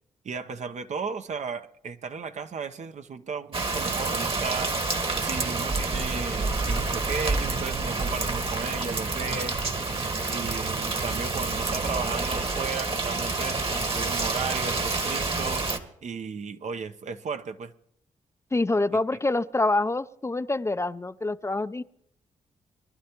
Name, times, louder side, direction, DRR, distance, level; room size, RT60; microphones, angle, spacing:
voice 1, 0.2-4.9 5.2-9.6 10.3-15.7 16.0-17.7, right 5 dB, 60° right, 0.8 m, -35 dB
Rain, 3.5-15.8, right 3 dB, 40° right, 1.6 m, -28 dB
voice 2, 18.5-21.8, left 2 dB, 20° left, 0.5 m, -26 dB
22.5 x 11.5 x 3.0 m
supercardioid pair, 50°, 14 cm